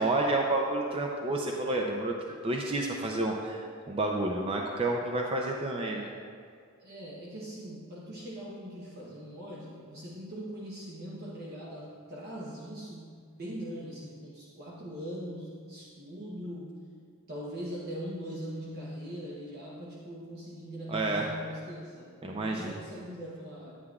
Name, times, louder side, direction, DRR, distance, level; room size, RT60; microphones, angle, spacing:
voice 1, 0.0-2.1 2.4-6.1 20.9-21.3 22.2-22.8, right 2 dB, 25° right, 0 dB, 0.4 m, -30 dB
voice 2, 6.8-16.7 17.3-23.8, equal, 45° right, -5 dB, 0.9 m, -41 dB
9.8 x 9.5 x 2.4 m, 2.1 s
head